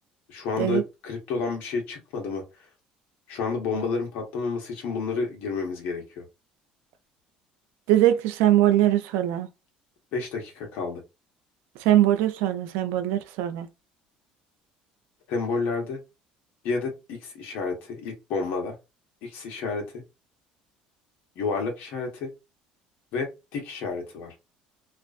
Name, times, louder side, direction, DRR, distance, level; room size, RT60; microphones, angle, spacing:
voice 1, 0.3-2.4 3.3-6.2 10.1-11.0 15.3-16.0 16.6-18.7 19.2-19.8 21.4-22.3 23.1-24.3, left 4 dB, 70° left, 1.2 m, -30 dB
voice 2, 7.9-9.5 11.8-13.7, right 13 dB, 80° right, 0.4 m, -21 dB
2.5 x 2.4 x 2.5 m
supercardioid pair, 85°, 3 cm